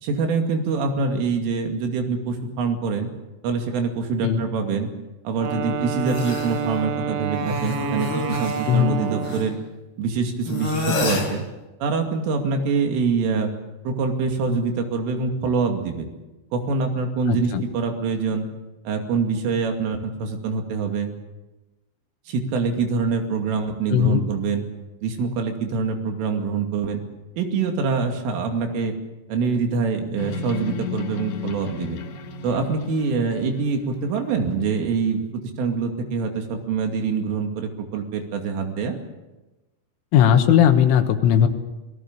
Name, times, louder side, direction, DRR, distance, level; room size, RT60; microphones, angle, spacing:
voice 1, 0.0-3.1 3.4-4.9 5.2-9.6 10.0-11.4 11.8-13.5 13.8-16.1 16.5-18.5 18.9-21.1 22.3-24.6 25.0-27.0 27.3-29.0 29.3-32.0 32.4-35.2 35.6-39.0, right 4 dB, 90° right, 4 dB, 5.0 m, -25 dB
Wind instrument woodwind instrument, 5.4-9.7, right 7 dB, 65° right, 3.3 m, -29 dB
sound 1, 6.1-6.6 7.4-9.5 10.5-11.3, left 2 dB, 30° left, 3.9 m, -28 dB
voice 2, 8.7-9.0 17.3-17.6 23.9-24.3 40.1-41.5, left 9 dB, 85° left, 5 dB, 3.9 m, -18 dB
sound 2, 30.2-34.0, left 6 dB, 60° left, 1.9 m, -34 dB
27.0 x 18.5 x 6.8 m, 1.1 s
omnidirectional pair, 5.6 m